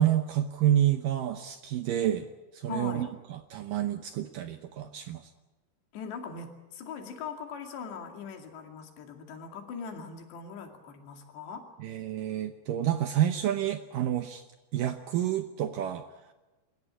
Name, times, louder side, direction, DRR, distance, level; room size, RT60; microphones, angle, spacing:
voice 1, 0.0-2.3 2.5-5.2 11.8-14.4 14.7-16.1, right 11 dB, 75° right, 8 dB, 2.1 m, -28 dB
voice 2, 2.7-3.1 5.9-11.7, left 6 dB, 80° left, 4 dB, 4.6 m, -40 dB
27.0 x 14.5 x 10.0 m, 1.1 s
omnidirectional pair, 4.9 m